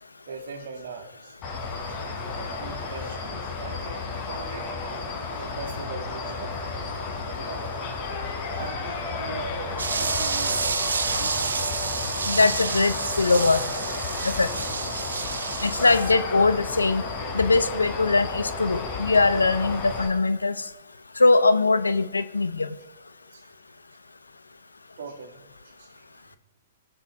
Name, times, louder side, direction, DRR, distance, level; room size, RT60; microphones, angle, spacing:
voice 1, 0.3-1.4 1.9-2.0 2.6-4.0 4.3-4.7 5.4-7.7 8.5-9.5 10.0-11.7 23.3-23.5 25.0-26.4, right 4 dB, 55° right, 0 dB, 2.3 m, -41 dB
sound 1, 1.4-20.1, left 3 dB, 35° left, 3.6 m, -32 dB
sound 2, 9.8-16.1, right 5 dB, 75° right, 0.7 m, -29 dB
voice 2, 12.3-13.6 14.2-14.5 15.6-17.0 17.3-20.6 21.2-22.7, left 3 dB, 85° left, 13 dB, 0.6 m, -21 dB
21.0 x 7.8 x 3.6 m, 1.2 s
figure-of-eight pair, 115°, 0 cm